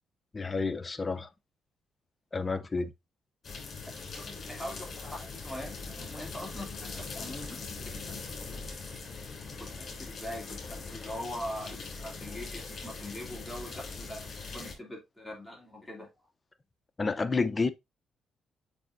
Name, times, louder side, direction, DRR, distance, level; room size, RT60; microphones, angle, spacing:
voice 1, 0.3-1.3 2.3-2.9 17.0-17.7, left 4 dB, 25° left, 0.6 m, -30 dB
sound 1, 3.4-14.7, left 4 dB, 45° left, 3.1 m, -41 dB
voice 2, 3.9-9.0 9.3-16.1, left 1 dB, ahead, 2.7 m, -43 dB
6.9 x 5.4 x 2.6 m
cardioid pair, 90°, 0 cm